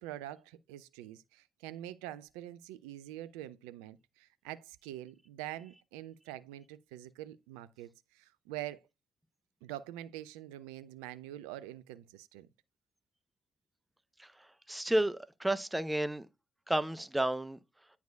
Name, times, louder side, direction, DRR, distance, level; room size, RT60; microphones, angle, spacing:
voice 1, 0.0-8.8 9.6-12.5, right 13 dB, 80° right, 0.3 m, -45 dB
voice 2, 14.7-16.3 16.7-17.6, right 1 dB, 10° right, 0.7 m, -31 dB
9.3 x 4.6 x 2.3 m
hypercardioid pair, 40°, 0 cm